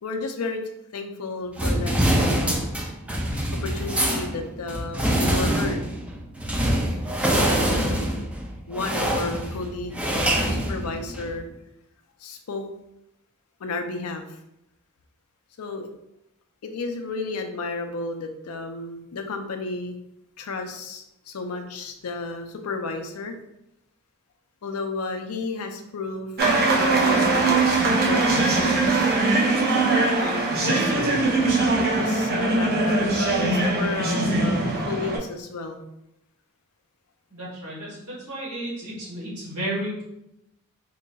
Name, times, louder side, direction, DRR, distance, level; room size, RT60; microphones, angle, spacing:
voice 1, 0.0-0.6 0.9-2.7 3.5-5.9 7.3-8.2 8.7-11.5 12.2-12.6 13.6-14.4 15.6-15.9 16.6-20.0 20.4-23.3 24.6-26.4 26.7-29.1 30.1-31.3 31.8-35.8, left 3 dB, 90° left, 6 dB, 0.5 m, -32 dB
sound 1, 1.6-11.4, right 1 dB, 5° right, 0.4 m, -25 dB
sound 2, 26.4-35.2, right 3 dB, 45° right, 0.6 m, -21 dB
voice 2, 37.3-40.0, right 1 dB, 80° right, -6 dB, 1.4 m, -33 dB
3.9 x 2.8 x 2.3 m, 0.84 s
head